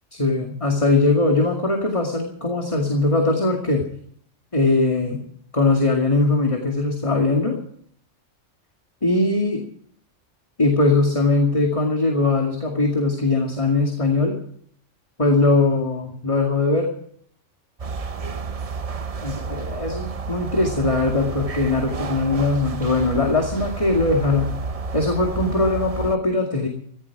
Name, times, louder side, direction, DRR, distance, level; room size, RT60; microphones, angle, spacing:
voice 1, 0.1-3.8 4.5-5.2 5.5-7.6 9.0-9.6 10.6-14.4 15.2-16.9 19.2-24.5 24.9-26.7, left 3 dB, 25° left, 1 dB, 2.3 m, -20 dB
sound 1, 17.8-26.2, right 4 dB, 35° right, 0.7 m, -31 dB
16.0 x 15.5 x 4.8 m, 0.62 s
omnidirectional pair, 1.3 m